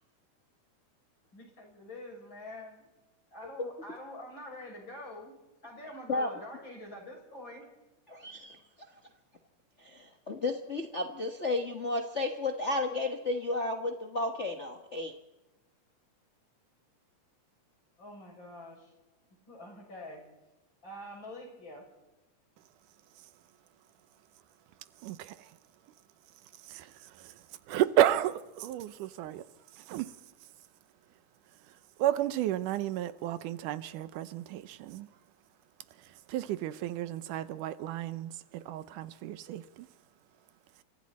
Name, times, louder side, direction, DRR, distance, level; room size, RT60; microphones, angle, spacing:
voice 1, 1.3-2.9 3.3-5.4 5.6-7.7 18.0-18.9 19.5-20.2 20.8-21.9, left 1 dB, 35° left, 7.5 m, -46 dB
voice 2, 8.1-8.9 9.8-15.1, left 2 dB, 70° left, 0.6 m, -33 dB
voice 3, 25.0-25.4 26.7-27.3 27.7-29.4 29.8-30.1 32.0-35.1 36.3-39.9, right 12 dB, 85° right, 2.4 m, -32 dB
29.5 x 25.0 x 4.3 m
omnidirectional pair, 3.6 m